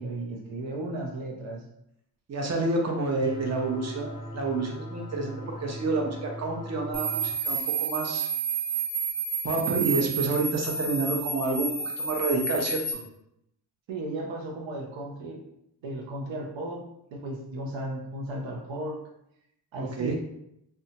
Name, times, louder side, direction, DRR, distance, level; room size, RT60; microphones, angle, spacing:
voice 1, 0.0-1.6 13.9-15.4 15.8-19.0 19.7-20.1, right 1 dB, 85° right, 0 dB, 0.6 m, -35 dB
voice 2, 2.3-8.3 9.4-11.7 12.0-13.0 19.8-20.1, right 3 dB, 35° right, 1 dB, 0.7 m, -29 dB
sound 1, 3.2-7.3, left 1 dB, 10° right, 0.3 m, -39 dB
sound 2, 6.9-12.9, right 5 dB, 65° right, 1.0 m, -30 dB
2.6 x 2.2 x 2.7 m, 0.79 s
cardioid pair, 50°, 44 cm